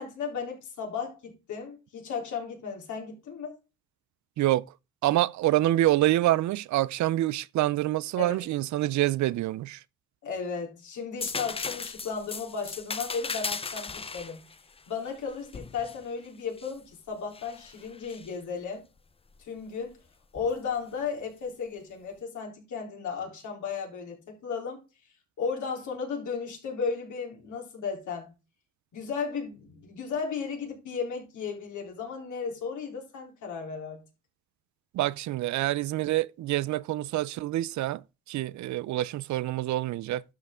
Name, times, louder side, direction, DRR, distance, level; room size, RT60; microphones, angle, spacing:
voice 1, 0.0-3.6 8.2-8.4 10.2-14.4 14.9-18.8 19.4-20.0 20.3-24.8 25.4-28.3 28.9-34.0, left 5 dB, 75° left, 3.6 m, -35 dB
voice 2, 5.0-9.8 34.9-40.2, right 15 dB, 70° right, 0.5 m, -26 dB
sound 1, 11.2-16.8 17.3-18.3 20.3-20.5, left 4 dB, 20° left, 0.6 m, -37 dB
12.0 x 5.5 x 3.7 m
cardioid pair, 90°, 30 cm